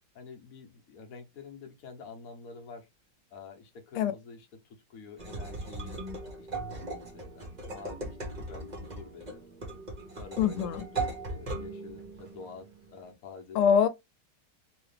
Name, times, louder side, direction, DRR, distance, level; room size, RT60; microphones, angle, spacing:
voice 1, 0.1-2.9 3.3-4.5 4.9-6.0 6.4-9.4 10.2-13.7, left 5 dB, 50° left, 1.1 m, -48 dB
sound 1, 5.2-13.1, right 2 dB, 35° right, 0.7 m, -39 dB
voice 2, 10.4-10.8 13.5-13.9, left 7 dB, 85° left, 1.5 m, -24 dB
3.3 x 3.0 x 3.3 m
omnidirectional pair, 2.3 m